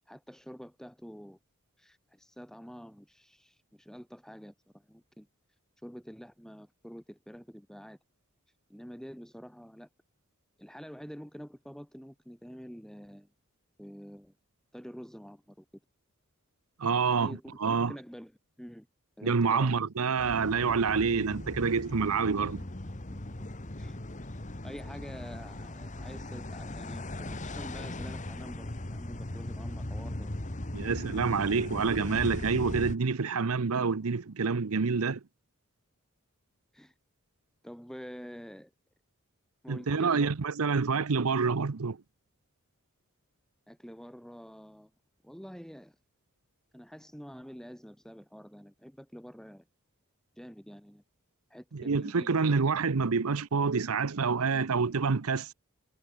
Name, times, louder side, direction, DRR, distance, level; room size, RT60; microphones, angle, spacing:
voice 1, 0.0-1.4 1.8-5.3 5.8-8.0 8.7-9.9 10.6-13.3 13.8-14.3 14.7-15.7 17.2-18.3 18.6-18.9 19.2-19.7 23.1-23.3 23.8-24.0 24.6-30.3 36.7-36.9 37.6-38.7 39.6-40.3 43.7-44.9 45.2-46.0 46.7-49.6 50.4-51.0 51.5-52.6, equal, ahead, 3.7 m, -47 dB
voice 2, 16.8-17.9 19.2-22.6 30.7-35.2 39.7-42.0 51.7-55.5, right 5 dB, 80° right, 0.7 m, -27 dB
sound 1, 20.2-33.0, left 1 dB, 35° left, 1.6 m, -39 dB
head